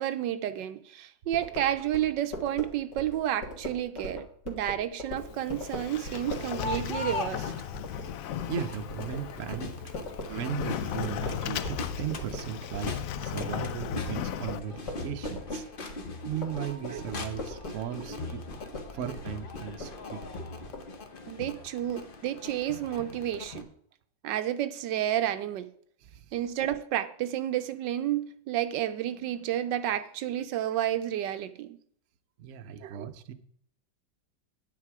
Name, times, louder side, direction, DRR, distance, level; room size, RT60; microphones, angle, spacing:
voice 1, 0.0-7.5 21.3-23.7 24.2-25.7 26.3-31.8 32.8-33.1, right 12 dB, 80° right, 1.2 m, -31 dB
sound 1, 1.3-11.8 12.1-20.8, left 1 dB, 65° left, 2.4 m, -40 dB
Sliding door, 5.2-14.6, left 11 dB, 90° left, 0.7 m, -37 dB
Crowd, 5.9-23.6, left 3 dB, 40° left, 0.8 m, -40 dB
voice 2, 8.5-9.8 10.3-12.9 13.2-15.6 16.2-18.4 18.9-20.2 26.0-26.3 32.4-33.3, right 9 dB, 60° right, 0.9 m, -36 dB
9.5 x 9.0 x 4.7 m
omnidirectional pair, 2.0 m